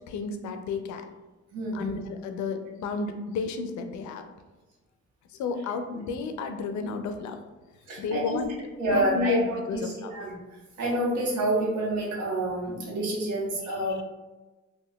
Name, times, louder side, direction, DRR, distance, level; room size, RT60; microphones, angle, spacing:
voice 1, 0.1-1.0 1.7-4.2 5.4-7.4 8.0-8.5 8.9-10.1 13.9-14.0, left 5 dB, 70° left, 7 dB, 0.5 m, -31 dB
voice 2, 1.5-2.1 5.9-6.0 7.9-8.4 8.8-10.3 10.8-14.0, right 1 dB, 80° right, -4 dB, 1.0 m, -28 dB
3.6 x 2.2 x 2.2 m, 1.2 s
cardioid pair, 90°, 30 cm